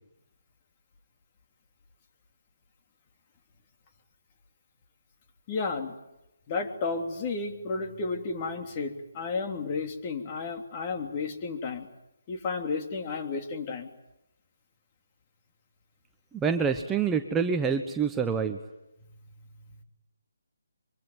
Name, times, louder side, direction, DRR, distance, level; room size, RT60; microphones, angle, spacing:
voice 1, 5.5-6.0 6.5-11.9 12.3-13.9, left 4 dB, 30° left, 4 dB, 3.1 m, -32 dB
voice 2, 16.3-18.6, right 6 dB, 10° right, 5 dB, 1.1 m, -26 dB
24.5 x 24.5 x 9.3 m, 0.90 s
figure-of-eight pair, 150°, 0 cm